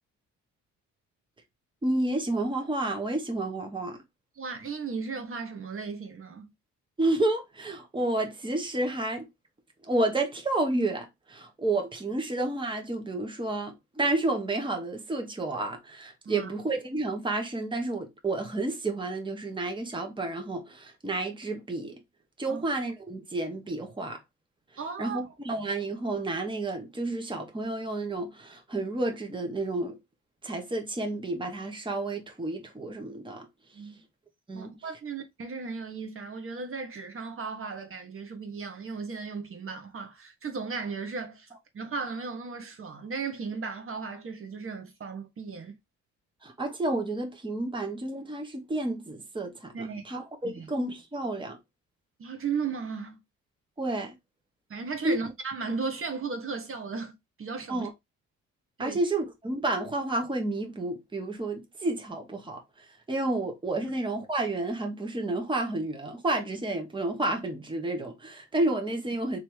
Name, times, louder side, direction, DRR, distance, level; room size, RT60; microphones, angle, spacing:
voice 1, 1.8-4.0 7.0-9.3 9.8-22.0 22.4-24.2 25.0-30.0 30.4-33.5 34.5-34.7 46.4-51.6 53.8-54.2 55.0-55.2 57.7-57.9 58.8-69.4, right 2 dB, 15° right, 1.1 m, -30 dB
voice 2, 4.4-6.5 16.2-16.5 22.5-22.6 24.8-25.3 33.7-34.0 34.5-41.5 41.7-45.8 49.7-50.1 50.4-50.7 52.2-53.2 54.7-57.1 57.4-57.9 58.8-59.0 63.8-63.9, right 5 dB, 45° right, 1.2 m, -36 dB
3.4 x 3.0 x 4.4 m
cardioid pair, 90°, 30 cm